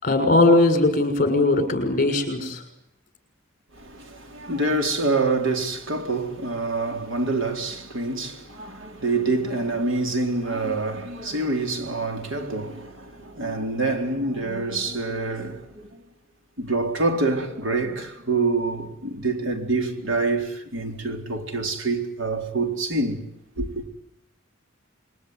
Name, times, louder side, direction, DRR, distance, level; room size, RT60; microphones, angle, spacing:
voice 1, 0.0-2.6, left 2 dB, 40° left, 6.4 m, -19 dB
voice 2, 3.7-16.0 16.6-23.2 23.6-23.8, right 3 dB, 65° right, 4.1 m, -26 dB
27.0 x 23.0 x 9.6 m
head